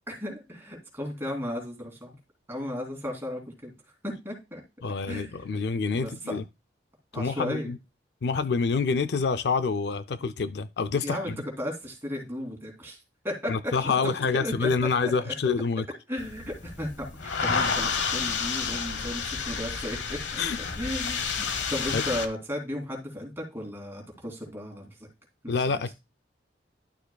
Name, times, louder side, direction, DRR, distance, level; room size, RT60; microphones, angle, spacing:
voice 1, 0.1-2.1 2.5-3.7 4.0-4.6 5.1-5.3 5.9-6.4 7.1-7.7 11.0-11.3 11.6-13.0 13.2-13.9 14.3-14.7 15.2-15.3 16.1-20.4 20.8-24.9 25.7-25.8, left 1 dB, 15° right, 2.7 m, -35 dB
voice 2, 4.8-6.4 7.1-7.8 8.2-11.4 13.5-15.8 20.4-20.6 21.9-22.0 25.5-25.9, left 4 dB, 60° left, 0.4 m, -27 dB
sound 1, 16.2-22.3, left 5 dB, 80° left, 1.0 m, -30 dB
11.5 x 6.8 x 2.3 m
head